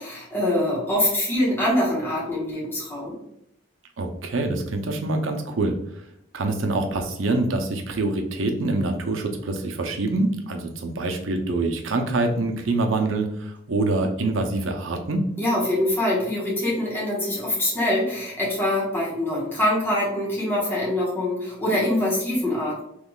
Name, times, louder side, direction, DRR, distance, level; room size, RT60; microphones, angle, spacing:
voice 1, 0.0-3.1 15.4-22.8, left 1 dB, 10° left, -7 dB, 1.3 m, -24 dB
voice 2, 4.0-5.7 6.3-15.3, right 2 dB, 85° right, 4 dB, 0.6 m, -25 dB
3.6 x 3.1 x 2.3 m, 0.78 s
head